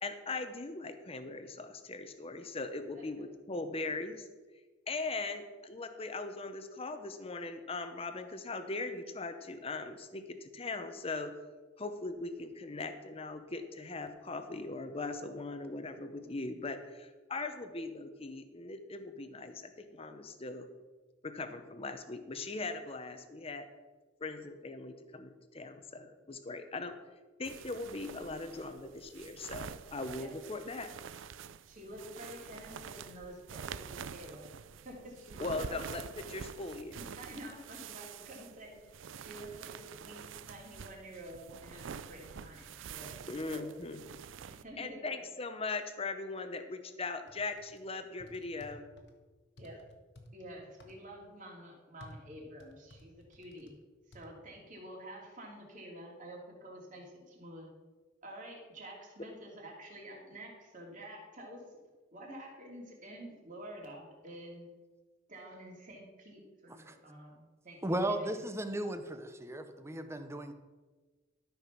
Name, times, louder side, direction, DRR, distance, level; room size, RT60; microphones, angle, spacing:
voice 1, 0.0-4.3 4.9-11.4 11.8-20.7 21.2-23.7 24.2-27.0 27.4-30.9 35.4-36.0 36.3-37.0 43.3-44.0 44.8-48.9, left 3 dB, 30° left, 9 dB, 0.8 m, -40 dB
sound 1, 27.4-44.6, right 7 dB, 80° right, 0.5 m, -47 dB
voice 2, 31.6-34.5 34.8-35.8 36.9-38.7 39.1-43.7 44.5-45.2 49.6-49.8 50.3-53.7 54.1-57.7 58.2-61.6 62.1-64.7 65.3-68.3, right 1 dB, 40° right, -1 dB, 2.6 m, -49 dB
sound 2, 47.3-47.8 48.2-49.1 49.6-50.3 50.8-51.0 52.0-53.7 54.1-54.3, left 1 dB, 60° left, 1.4 m, -54 dB
voice 3, 67.8-70.5, right 1 dB, 15° right, 8 dB, 0.7 m, -35 dB
12.5 x 5.9 x 5.9 m, 1.3 s
head